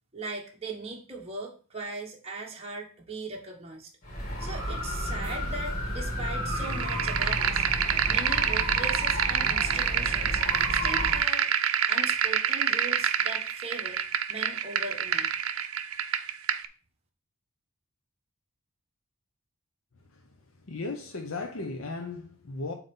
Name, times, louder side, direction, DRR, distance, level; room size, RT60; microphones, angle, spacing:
voice 1, 0.1-3.9 4.4-7.6 8.1-10.4 10.7-11.5 11.9-14.0 14.3-15.3, right 3 dB, 30° right, 1.1 m, -39 dB
sound 1, 4.0-11.2, equal, 35° left, 1.8 m, -32 dB
sound 2, 6.6-16.6, right 9 dB, 75° right, 0.5 m, -27 dB
voice 2, 20.7-22.7, left 3 dB, 70° left, 0.7 m, -35 dB
7.8 x 2.9 x 5.3 m
head